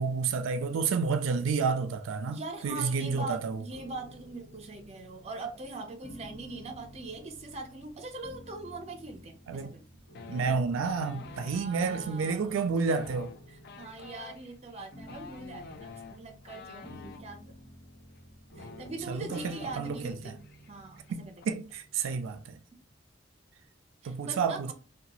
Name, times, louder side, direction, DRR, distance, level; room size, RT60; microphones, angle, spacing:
voice 1, 0.0-3.6 9.5-9.7 10.3-13.3 19.1-20.3 21.1-22.6 24.0-24.7, right 5 dB, 90° right, 0.3 m, -30 dB
voice 2, 2.3-9.9 11.5-12.6 13.5-17.7 18.6-20.4 20.7-21.3 24.0-24.7, right 3 dB, 35° right, 0.5 m, -42 dB
sound 1, 3.7-22.7, equal, 85° left, 1.0 m, -52 dB
sound 2, 10.1-11.6 12.8-17.2 18.2-18.3 18.5-20.2 20.4-20.7 21.0-21.4, left 5 dB, 55° left, 0.4 m, -48 dB
2.7 x 2.2 x 2.9 m
head